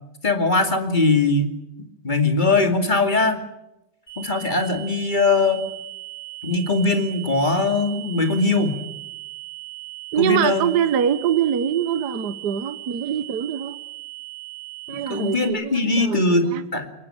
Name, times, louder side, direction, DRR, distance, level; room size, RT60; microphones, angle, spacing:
voice 1, 0.2-1.6 2.0-3.4 4.2-5.6 6.4-8.8 10.2-10.7 14.9-16.9, left 3 dB, 25° left, 6 dB, 2.6 m, -21 dB
sound 1, 4.1-15.5, right 20 dB, 50° left, 8.6 m, -38 dB
voice 2, 10.1-13.8 14.9-16.6, right 9 dB, 65° right, 12 dB, 1.6 m, -24 dB
24.0 x 20.0 x 8.8 m, 0.91 s
omnidirectional pair, 2.0 m